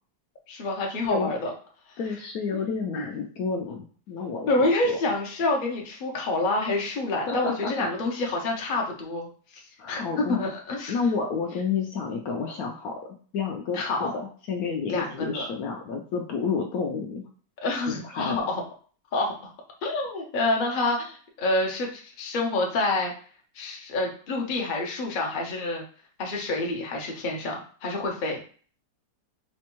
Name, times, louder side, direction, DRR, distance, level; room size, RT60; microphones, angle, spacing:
voice 1, 0.5-1.5 1.9-2.0 2.5-2.6 2.9-3.1 4.5-9.6 9.9-11.0 13.7-14.1 14.9-15.4 17.6-18.6 19.1-19.5 19.8-23.1 23.5-25.8 26.2-28.4, left 2 dB, 50° left, 0 dB, 0.5 m, -27 dB
voice 2, 2.0-5.0 7.3-7.5 9.8-10.4 10.9-12.9 13.3-17.2 18.0-18.4, left 5 dB, 70° left, 1 dB, 0.9 m, -30 dB
4.2 x 2.2 x 3.0 m, 0.44 s
omnidirectional pair, 1.9 m